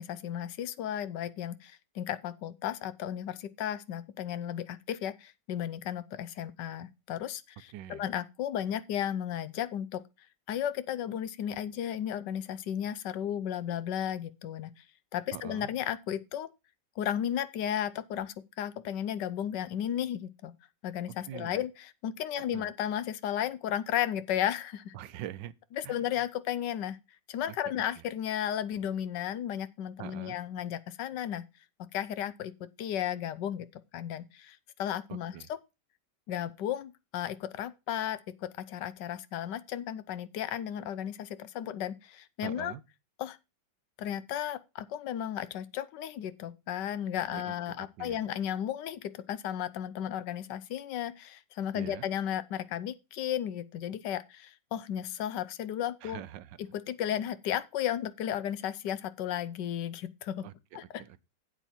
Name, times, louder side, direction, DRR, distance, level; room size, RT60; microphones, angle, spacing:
voice 1, 0.0-10.0 10.5-14.8 15.1-16.5 17.0-20.5 20.8-24.9 25.8-27.0 27.3-31.4 31.9-35.6 36.3-42.7 43.2-43.4 44.0-56.2 56.6-60.4 60.7-61.0, left 10 dB, 80° left, 1.3 m, -34 dB
voice 2, 7.7-8.0 15.3-15.7 21.3-21.6 22.4-22.7 24.9-25.5 25.8-26.2 27.5-28.0 30.0-30.4 35.1-35.5 42.4-42.8 47.3-48.2 51.7-52.1 56.0-56.6 60.4-61.2, right 12 dB, 90° right, 1.4 m, -44 dB
8.9 x 8.0 x 4.3 m
omnidirectional pair, 1.9 m